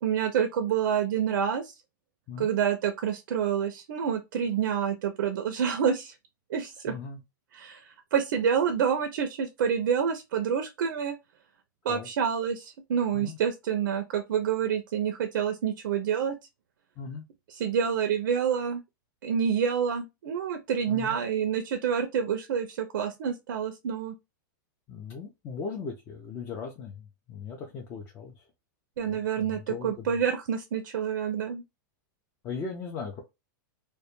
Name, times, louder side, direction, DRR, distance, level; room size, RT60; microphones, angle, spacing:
voice 1, 0.0-1.7 2.4-6.2 6.5-7.0 7.5-11.2 11.8-16.3 17.5-18.8 19.2-24.1 29.0-31.6, right 7 dB, 75° right, 0.4 m, -28 dB
voice 2, 6.9-7.2 11.9-12.1 13.1-13.4 17.0-17.3 20.9-21.2 24.9-28.5 29.0-30.2 32.4-33.2, left 5 dB, 20° left, 0.4 m, -38 dB
2.1 x 2.1 x 2.9 m
supercardioid pair, 155°, 11 cm